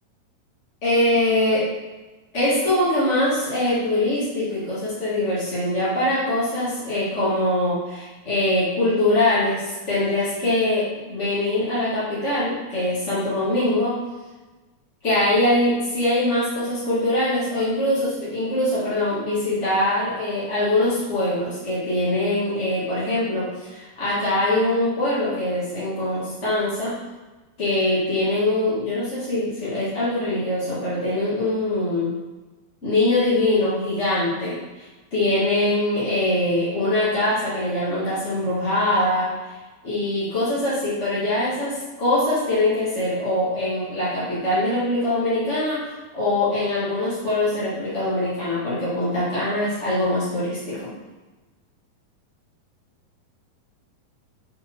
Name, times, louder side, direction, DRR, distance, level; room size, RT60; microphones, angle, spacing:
voice 1, 0.8-1.7 2.3-14.0 15.0-27.0 27.6-32.1 32.8-39.5 39.8-50.9, left 1 dB, 40° left, -11 dB, 1.0 m, -23 dB
6.4 x 4.1 x 4.5 m, 1.2 s
omnidirectional pair, 4.1 m